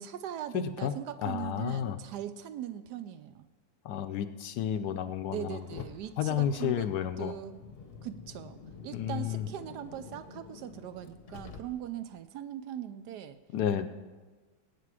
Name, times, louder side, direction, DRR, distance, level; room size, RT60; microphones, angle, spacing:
voice 1, 0.0-3.5 5.3-6.9 7.2-7.6 8.0-8.6 8.8-13.4, right 10 dB, 75° right, 12 dB, 1.1 m, -40 dB
voice 2, 0.5-0.9 1.2-2.0 3.8-5.6 6.2-7.3 8.9-9.5 13.5-13.9, left 9 dB, 70° left, 11 dB, 1.1 m, -31 dB
Car, 5.6-12.1, left 5 dB, 40° left, 0.9 m, -49 dB
18.5 x 8.5 x 4.8 m, 1.3 s
omnidirectional pair, 2.0 m